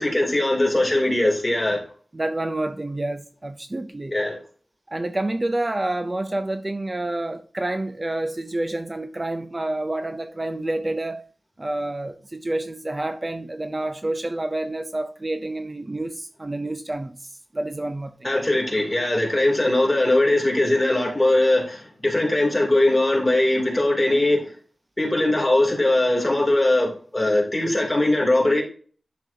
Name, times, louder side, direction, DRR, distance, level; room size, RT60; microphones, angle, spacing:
voice 1, 0.0-1.8 4.1-4.4 18.2-24.4 25.0-28.6, left 1 dB, 20° left, 2.9 m, -20 dB
voice 2, 2.1-4.1 4.9-11.3 11.6-18.3, right 2 dB, 30° right, 0.5 m, -28 dB
11.0 x 6.1 x 2.8 m
wide cardioid pair, 95°, 0 cm